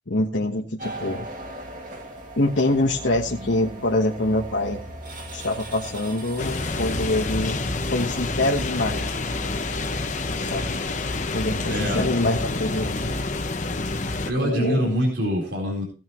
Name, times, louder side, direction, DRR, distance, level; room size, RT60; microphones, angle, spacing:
voice 1, 0.1-1.3 2.4-4.8 5.3-7.6 7.9-9.1 10.4-10.8 11.3-13.1 14.4-14.9, left 2 dB, 70° left, -1 dB, 1.3 m, -25 dB
sound 1, 0.8-13.2, right 1 dB, 45° right, 2.3 m, -39 dB
sound 2, 6.4-14.3, left 3 dB, 40° left, 0.9 m, -28 dB
voice 2, 11.7-12.1 14.2-15.8, equal, 65° right, -2 dB, 4.1 m, -25 dB
16.5 x 8.8 x 3.1 m, 0.37 s
head